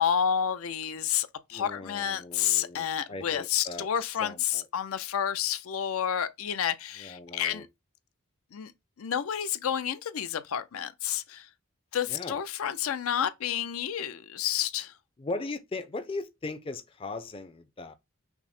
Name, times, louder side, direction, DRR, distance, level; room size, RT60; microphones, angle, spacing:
voice 1, 0.0-7.7 8.5-8.7 9.0-11.5 11.9-14.9, left 9 dB, 85° left, 0.5 m, -30 dB
voice 2, 1.5-3.9 4.2-4.6 7.0-7.6 12.1-12.4 15.2-17.9, left 2 dB, 25° left, 0.4 m, -38 dB
5.9 x 2.0 x 4.2 m
head